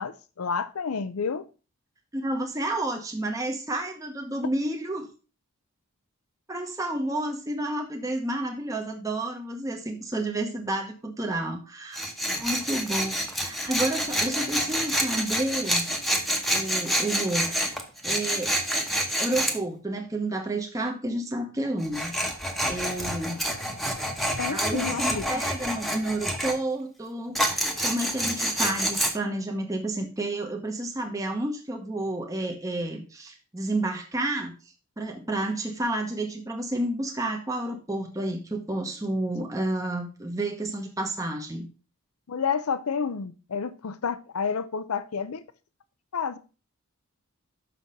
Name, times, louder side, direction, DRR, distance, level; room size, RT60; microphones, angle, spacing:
voice 1, 0.0-1.5 24.4-25.4 42.3-45.4 46.1-46.4, left 6 dB, 90° left, 0.6 m, -30 dB
voice 2, 2.1-5.1 6.5-12.1 12.4-15.9 16.5-17.7 18.0-18.6 19.2-22.1 22.6-23.4 24.5-34.6 35.0-41.7, right 1 dB, 15° right, 1.0 m, -30 dB
Tools, 11.9-19.6 21.8-26.6 27.3-29.1, equal, ahead, 1.0 m, -28 dB
6.2 x 6.0 x 5.4 m
head